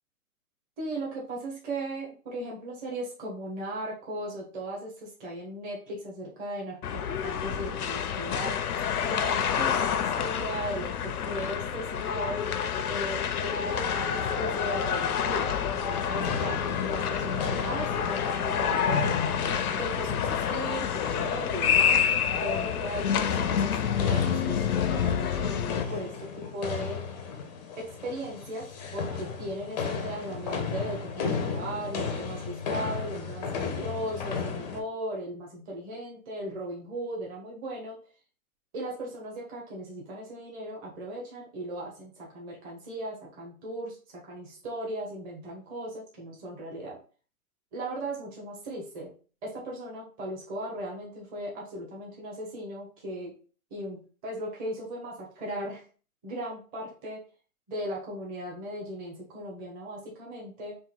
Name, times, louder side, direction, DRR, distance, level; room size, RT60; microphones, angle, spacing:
voice 1, 0.8-12.5 12.9-19.1 19.7-22.0 22.3-27.0 27.8-38.0 38.7-47.0 47.7-49.1 49.4-53.3 53.7-55.8 56.2-57.2 57.7-60.8, right 1 dB, 20° right, -2 dB, 1.1 m, -37 dB
sound 1, 6.8-25.8, left 8 dB, 90° left, 0.7 m, -28 dB
sound 2, 15.9-34.8, left 5 dB, 30° left, 0.6 m, -34 dB
3.6 x 2.6 x 4.5 m, 0.38 s
hypercardioid pair, 145°, 43 cm